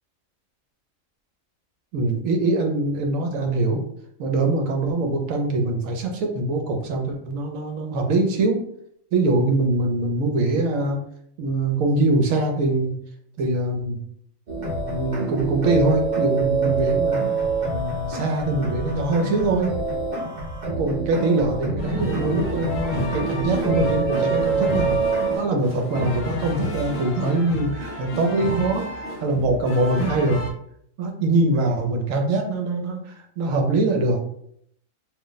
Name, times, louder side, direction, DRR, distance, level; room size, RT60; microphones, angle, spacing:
voice 1, 1.9-3.8 4.2-8.6 9.1-11.0 11.4-12.9 13.4-14.0 14.9-17.2 17.6-19.8 20.7-25.0 25.4-30.4 31.0-34.2, right 2 dB, 75° right, 3 dB, 1.0 m, -23 dB
sound 1, 14.5-25.4, right 4 dB, 40° right, 0.7 m, -26 dB
sound 2, 21.8-30.5, left 1 dB, 60° left, 0.7 m, -31 dB
2.5 x 2.1 x 3.8 m, 0.68 s
omnidirectional pair, 1.4 m